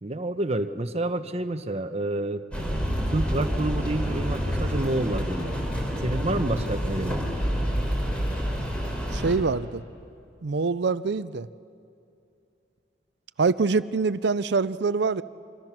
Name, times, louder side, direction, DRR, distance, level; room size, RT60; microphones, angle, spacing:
voice 1, 0.0-2.4 3.1-5.6 6.0-7.2, right 2 dB, 35° right, 8 dB, 1.0 m, -28 dB
sound 1, 2.5-9.4, equal, 5° left, 3.7 m, -28 dB
voice 2, 9.1-9.8 10.4-11.5 13.4-15.2, right 4 dB, 65° right, 16 dB, 0.5 m, -24 dB
28.5 x 24.0 x 6.1 m, 2.6 s
head